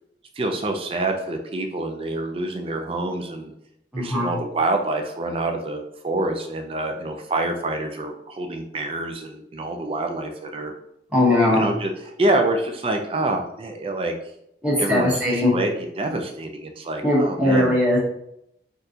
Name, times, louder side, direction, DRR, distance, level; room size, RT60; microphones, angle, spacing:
voice 1, 0.4-3.5 4.0-10.7 11.4-14.1 14.8-17.7, right 2 dB, 30° right, 4 dB, 0.4 m, -26 dB
voice 2, 3.9-4.3 11.1-11.7 14.6-15.5 17.0-18.0, left 1 dB, 5° right, -6 dB, 0.9 m, -19 dB
3.8 x 2.4 x 2.7 m, 0.77 s
head